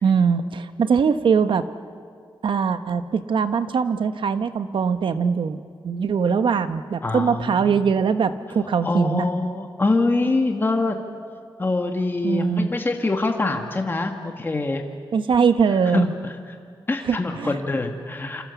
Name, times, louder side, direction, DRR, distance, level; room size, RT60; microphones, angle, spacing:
voice 1, 0.0-1.6 2.4-9.3 12.2-12.7 15.1-16.1 17.1-17.6, right 6 dB, 75° right, 10 dB, 1.2 m, -21 dB
voice 2, 7.0-7.8 8.8-11.0 11.6-14.8 15.9-16.1 16.9-18.4, left 3 dB, 25° left, 4 dB, 1.7 m, -24 dB
28.0 x 27.0 x 7.1 m, 2.2 s
wide cardioid pair, 135°, 9 cm